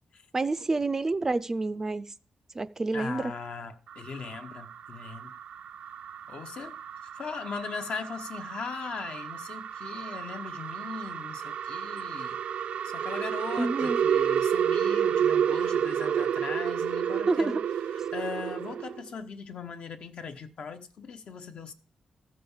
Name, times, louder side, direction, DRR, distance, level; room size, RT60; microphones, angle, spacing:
voice 1, 0.3-2.1 2.5-3.3 13.6-14.0 17.3-17.6, right 3 dB, 25° right, 0.4 m, -28 dB
voice 2, 2.9-5.3 6.3-6.8 7.2-12.4 12.8-17.6 18.1-21.7, left 5 dB, 65° left, 1.1 m, -39 dB
sound 1, 3.9-19.0, right 8 dB, 85° right, 0.5 m, -31 dB
14.0 x 5.1 x 7.2 m
wide cardioid pair, 135°, 2 cm